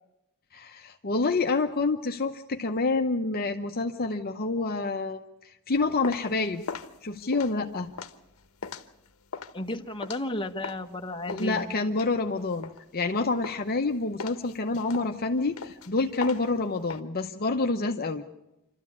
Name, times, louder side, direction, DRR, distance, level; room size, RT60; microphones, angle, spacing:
voice 1, 0.5-6.6 7.0-7.9 11.3-18.2, left 3 dB, 45° left, 4 dB, 0.8 m, -28 dB
sound 1, 5.7-10.9 11.3-13.1 13.4-13.8 14.2-17.0, left 5 dB, 70° left, 1.0 m, -39 dB
voice 2, 9.5-11.8, left 1 dB, 25° left, 4 dB, 1.1 m, -33 dB
27.0 x 13.0 x 8.6 m, 0.92 s
head